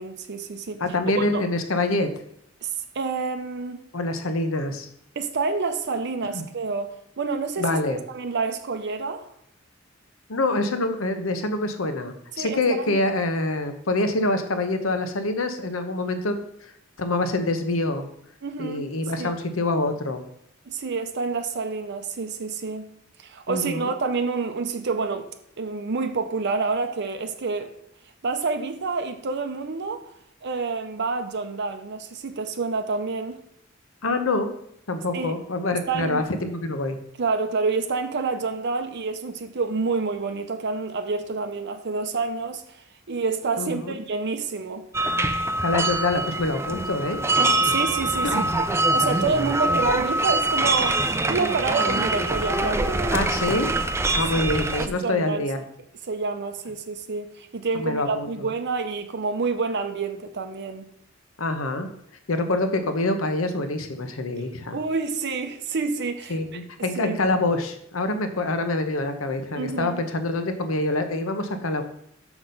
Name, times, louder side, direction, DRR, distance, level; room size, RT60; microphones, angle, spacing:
voice 1, 0.0-0.8 1.1-1.5 2.6-2.7 2.9-3.8 5.2-9.3 12.4-13.0 18.4-18.9 19.2-19.3 20.7-22.9 23.2-25.3 25.6-27.7 28.2-30.1 30.4-33.4 35.1-35.4 35.9-36.2 37.2-44.8 47.4-48.4 48.9-53.3 54.8-55.5 56.0-60.9 64.7-66.6 67.0-67.2 69.6-70.0, right 4 dB, 55° right, 0.6 m, -28 dB
voice 2, 0.8-2.1 3.9-4.9 6.3-6.4 7.6-8.0 10.3-16.4 17.0-18.0 18.6-20.2 23.5-23.9 34.0-34.5 34.9-37.0 43.6-43.9 45.6-47.2 48.2-48.5 53.1-53.7 54.2-55.6 57.7-58.5 61.4-61.9 62.3-64.8 66.3-71.8, left 2 dB, 80° left, 1.0 m, -26 dB
sound 1, 44.9-54.9, right 2 dB, 15° right, 0.4 m, -24 dB
6.1 x 6.0 x 5.3 m
head